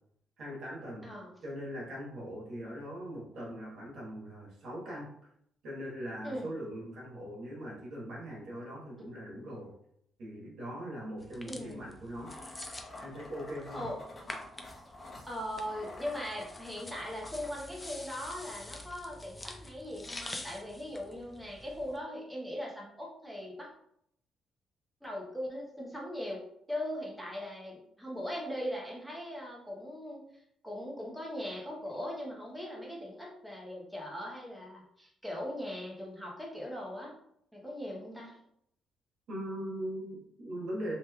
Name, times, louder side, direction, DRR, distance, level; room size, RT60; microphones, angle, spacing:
voice 1, 0.4-1.1 1.4-5.1 5.6-9.7 10.2-12.4 13.0-13.9 39.3-41.0, equal, 70° right, -4 dB, 1.2 m, -40 dB
sound 1, 11.2-22.0, left 1 dB, 20° left, 0.4 m, -47 dB
voice 2, 11.4-11.9 13.7-14.2 15.3-23.7 25.0-26.4 26.7-37.1 37.5-38.4, equal, ahead, -3 dB, 0.8 m, -40 dB
sound 2, 12.2-17.5, left 1 dB, 35° left, 0.9 m, -48 dB
3.1 x 2.9 x 2.2 m, 0.73 s
cardioid pair, 90°, 0 cm